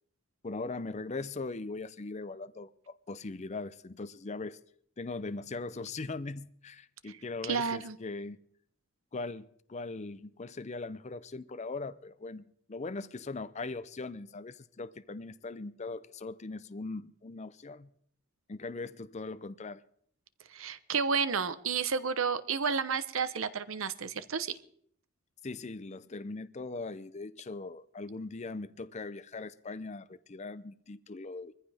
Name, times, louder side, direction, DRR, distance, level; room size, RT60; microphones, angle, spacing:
voice 1, 0.4-4.6 5.0-8.4 9.1-12.4 12.7-17.9 18.5-19.8 25.4-31.5, left 3 dB, 30° left, 0.5 m, -40 dB
voice 2, 7.4-8.0 20.5-24.6, right 5 dB, 65° right, 0.9 m, -31 dB
23.0 x 15.0 x 3.5 m
head